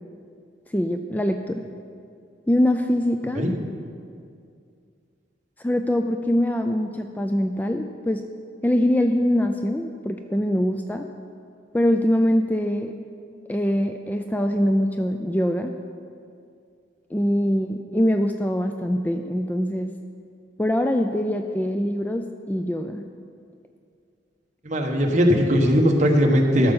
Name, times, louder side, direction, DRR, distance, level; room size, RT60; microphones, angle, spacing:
voice 1, 0.7-1.7 2.5-3.4 5.6-8.2 8.6-11.1 11.7-12.9 13.5-15.7 17.1-19.9 20.6-23.0, equal, 10° left, 5 dB, 0.3 m, -23 dB
voice 2, 24.6-26.7, equal, 45° right, 1 dB, 1.2 m, -19 dB
13.0 x 6.7 x 5.5 m, 2.3 s
head